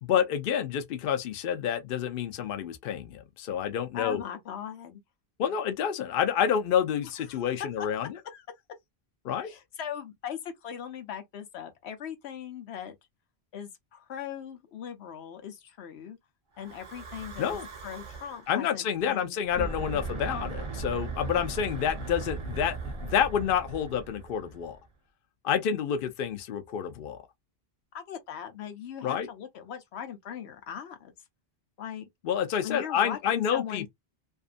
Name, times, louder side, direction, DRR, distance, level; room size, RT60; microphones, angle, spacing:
voice 1, 0.0-4.2 5.4-8.2 9.2-9.5 17.4-17.7 18.5-22.7 23.0-24.8 25.4-27.2 29.0-29.3 32.2-33.9, left 8 dB, 65° left, 0.7 m, -28 dB
voice 2, 3.9-5.0 7.3-7.5 7.8-7.9 8.2-8.4 9.4-13.0 13.5-16.2 16.6-20.0 27.9-31.1 31.8-32.1 32.6-33.9, left 8 dB, 90° left, 1.0 m, -40 dB
Breathing / Wind, 16.6-18.5 19.4-24.8, right 4 dB, 35° right, 0.6 m, -38 dB
2.6 x 2.4 x 2.4 m
omnidirectional pair, 1.1 m